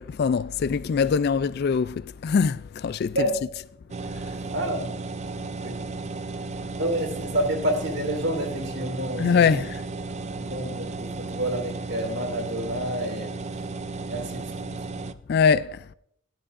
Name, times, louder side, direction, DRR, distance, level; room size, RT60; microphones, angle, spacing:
voice 1, 0.0-3.3 9.2-9.8 15.3-15.8, left 6 dB, 50° left, 0.3 m, -23 dB
sound 1, 3.9-15.1, right 3 dB, 30° right, 0.4 m, -34 dB
voice 2, 4.5-4.9 5.6-6.0 6.8-9.6 10.4-13.3 14.1-14.8, right 1 dB, 55° right, 2.4 m, -29 dB
13.5 x 11.5 x 2.5 m
head